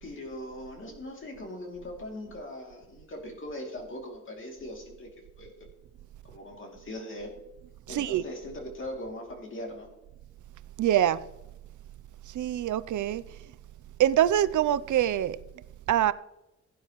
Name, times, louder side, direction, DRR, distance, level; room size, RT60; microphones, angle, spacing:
voice 1, 0.0-5.1 5.4-5.7 6.3-7.3 7.9-9.9, left 1 dB, 40° left, 2.6 m, -40 dB
voice 2, 7.9-8.2 10.8-11.2 12.3-13.2 14.0-15.4 15.9-16.1, right 11 dB, 80° right, 0.5 m, -24 dB
16.5 x 9.2 x 3.0 m
wide cardioid pair, 175°, 30 cm